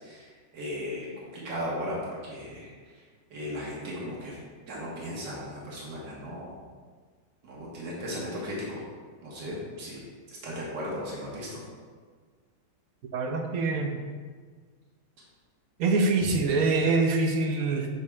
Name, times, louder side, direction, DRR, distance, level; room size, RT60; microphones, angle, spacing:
voice 1, 0.0-3.0 3.3-4.4 4.7-6.6 7.4-8.8 9.2-10.0 10.3-11.6, equal, 85° right, -5 dB, 2.1 m, -36 dB
voice 2, 13.1-14.0 15.8-17.9, right 3 dB, 65° right, 3 dB, 1.0 m, -25 dB
7.0 x 6.5 x 2.3 m, 1.5 s
omnidirectional pair, 1.9 m